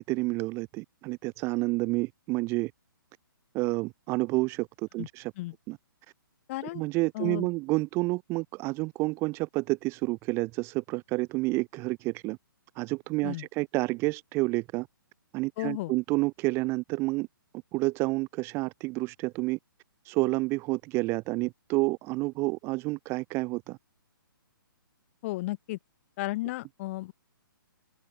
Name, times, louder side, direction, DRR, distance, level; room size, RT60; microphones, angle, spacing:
voice 1, 0.0-2.7 3.5-5.3 5.7-5.8 6.7-12.4 12.8-14.9 15.3-17.3 17.7-19.6 20.0-23.8, right 23 dB, 20° right, 0.5 m, -29 dB
voice 2, 6.5-6.8 7.1-7.5 13.2-13.5 15.6-15.9 25.2-25.8 26.2-27.1, left 19 dB, 35° left, 3.8 m, -33 dB
open air
figure-of-eight pair, 135°, 12 cm